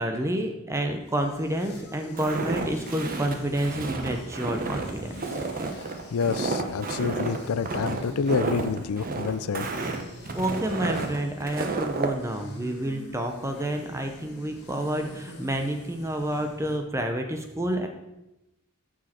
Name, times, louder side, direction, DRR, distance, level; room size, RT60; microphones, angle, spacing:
voice 1, 0.0-5.4 10.3-17.9, right 1 dB, 15° right, 5 dB, 0.6 m, -29 dB
sound 1, 0.8-16.8, left 1 dB, 50° left, 1.5 m, -44 dB
Walk footsteps, 2.2-12.1, right 3 dB, 40° right, 1.0 m, -31 dB
voice 2, 6.1-9.7, left 5 dB, 70° left, 15 dB, 0.5 m, -28 dB
14.5 x 4.9 x 4.3 m, 0.95 s
head